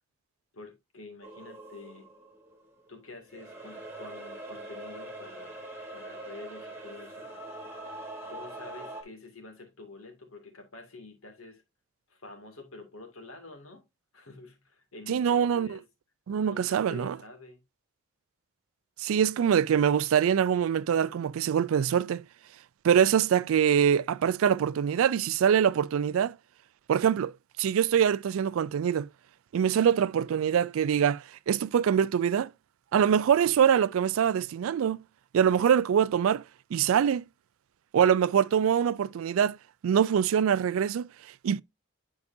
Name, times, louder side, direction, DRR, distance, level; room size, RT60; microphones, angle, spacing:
voice 1, 0.5-2.1 2.9-5.6 5.9-7.3 8.3-11.6 12.1-13.8 14.1-15.8 16.4-17.6, left 3 dB, 85° left, 2.2 m, -47 dB
sound 1, 1.2-2.9 3.3-9.0, right 1 dB, 10° right, 1.4 m, -43 dB
voice 2, 15.1-15.8 16.3-17.2 19.0-22.2 22.8-26.3 26.9-27.3 27.6-29.1 29.5-32.5 32.9-35.0 35.3-36.4 36.7-37.2 37.9-39.6 39.8-41.1 41.4-41.6, right 8 dB, 75° right, 0.3 m, -24 dB
9.7 x 4.8 x 2.6 m
head